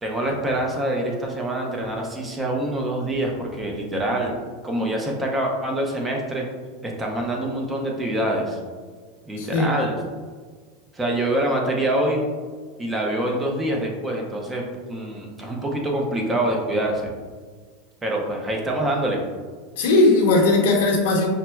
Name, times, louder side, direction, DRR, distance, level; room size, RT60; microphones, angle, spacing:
voice 1, 0.0-4.3 4.6-6.5 6.8-8.6 9.3-10.0 10.9-12.2 12.8-14.6 14.9-17.1 18.0-19.2, right 1 dB, 10° right, 0 dB, 0.6 m, -25 dB
voice 2, 9.4-9.7 19.8-21.3, left 2 dB, 75° left, -1 dB, 0.8 m, -18 dB
5.5 x 2.1 x 2.2 m, 1.5 s
supercardioid pair, 140°, 0 cm